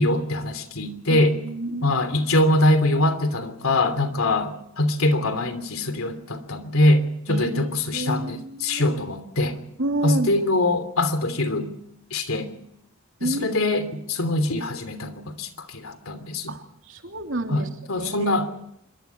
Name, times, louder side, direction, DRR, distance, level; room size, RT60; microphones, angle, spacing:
voice 1, 0.0-1.4 1.8-9.6 10.0-11.7 12.1-12.5 13.2-16.5 17.5-18.5, left 1 dB, 80° left, 3.0 m, -23 dB
voice 2, 1.1-1.9 7.3-8.9 9.8-10.4 13.2-13.5 16.5-16.6 16.9-17.7 17.9-18.4, right 2 dB, 65° right, 3.0 m, -29 dB
26.0 x 23.5 x 4.6 m
head